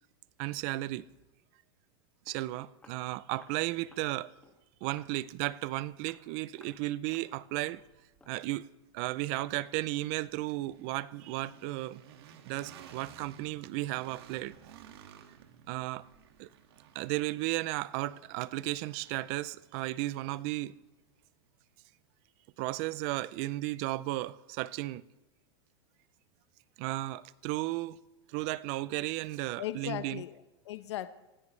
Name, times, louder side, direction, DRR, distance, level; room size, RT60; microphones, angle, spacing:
voice 1, 0.4-1.0 2.3-4.3 4.8-7.8 8.3-8.6 8.9-12.0 12.4-14.5 15.7-16.0 16.4-16.5 16.9-20.7 22.6-25.0 26.8-28.0 28.3-30.2, right 18 dB, 35° right, 0.4 m, -34 dB
Walk footsteps, 1.9-2.0 2.3-2.4 2.8-3.0 3.4-3.6 3.9-4.1 4.4-4.6 5.0-5.2 5.5-5.7 6.0-6.3 6.6-6.8 7.1-7.3 7.6-7.9 8.2-8.4, left 3 dB, 10° left, 1.9 m, -59 dB
sound 1, 6.2-21.6, right 9 dB, 60° right, 1.9 m, -57 dB
voice 2, 29.6-31.1, left 13 dB, 75° left, 1.0 m, -38 dB
26.5 x 15.5 x 3.2 m
supercardioid pair, 175°, 14 cm